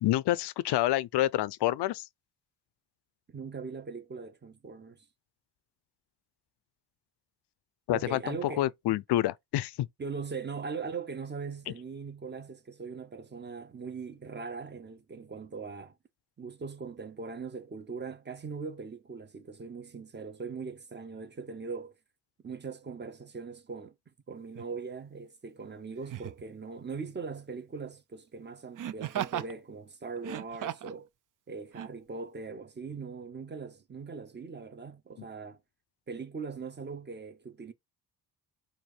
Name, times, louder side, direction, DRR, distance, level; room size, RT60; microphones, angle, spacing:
voice 1, 0.0-2.1 7.9-9.7, left 14 dB, 75° left, 0.5 m, -28 dB
voice 2, 3.3-5.0 7.9-8.7 10.0-16.0 16.4-21.9 22.4-23.9 24.3-31.1 31.5-35.6 36.1-37.7, right 4 dB, 25° right, 0.8 m, -40 dB
Laughter, 24.6-24.7 26.0-26.4 28.8-29.5 30.2-31.0 31.7-31.9, right 11 dB, 50° right, 0.5 m, -36 dB
4.3 x 2.6 x 4.7 m
cardioid pair, 105°, 40 cm